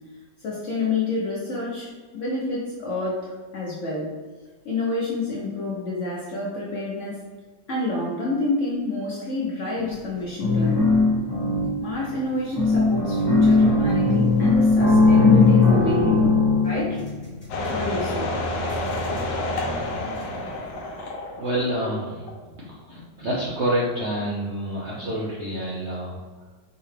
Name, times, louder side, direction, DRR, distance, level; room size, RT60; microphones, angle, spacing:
voice 1, 0.4-4.1 4.6-7.2 7.7-10.9 11.8-16.4 16.6-17.0 17.7-18.3, left 2 dB, 60° left, -5 dB, 0.8 m, -28 dB
sound 1, 9.8-10.1 10.4-12.1 12.6-17.7 18.7-18.8 19.2-19.3, left 3 dB, 35° left, 1.2 m, -19 dB
sound 2, 17.5-22.0 22.3-22.4, left 2 dB, 85° left, 1.3 m, -29 dB
voice 2, 21.4-22.2 22.7-26.2, right 1 dB, 65° right, -6 dB, 0.7 m, -27 dB
4.7 x 2.2 x 3.2 m, 1.4 s
omnidirectional pair, 1.9 m